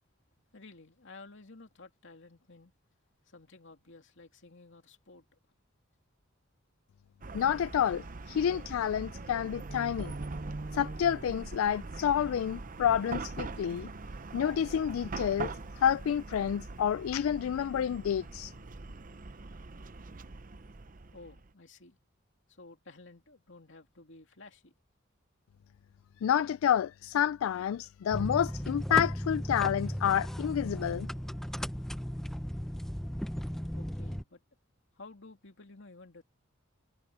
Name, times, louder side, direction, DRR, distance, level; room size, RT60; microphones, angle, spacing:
voice 1, 0.5-2.7 3.2-5.2 21.1-22.0 22.5-24.7 33.7-34.4 34.9-36.2, left 3 dB, 65° left, 2.8 m, -53 dB
Chatter / Car passing by / Traffic noise roadway noise, 7.2-21.5, right 3 dB, 45° right, 0.8 m, -42 dB
voice 2, 7.3-10.1 10.7-13.9 14.3-18.5 26.2-31.1, left 9 dB, 85° left, 0.3 m, -29 dB
sound 1, 28.1-34.2, equal, ahead, 0.6 m, -36 dB
head